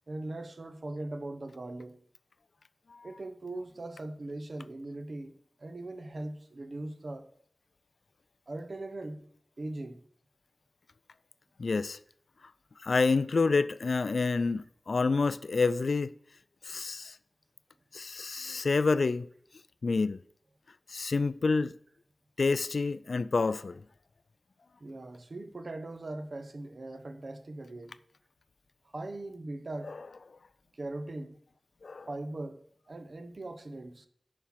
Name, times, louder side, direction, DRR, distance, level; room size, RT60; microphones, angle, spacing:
voice 1, 0.1-2.0 3.0-5.3 5.6-7.3 8.5-9.2 9.6-10.0 24.8-27.9 28.9-29.9 30.8-31.4 32.1-32.6 32.9-34.1, right 2 dB, 55° right, 0.8 m, -40 dB
voice 2, 11.6-12.0 12.8-16.1 16.7-17.2 17.9-19.3 19.8-20.2 20.9-21.7 22.4-23.8 29.9-30.0 31.8-32.1, left 4 dB, 75° left, 0.3 m, -28 dB
10.0 x 4.4 x 5.8 m
wide cardioid pair, 90°, 0 cm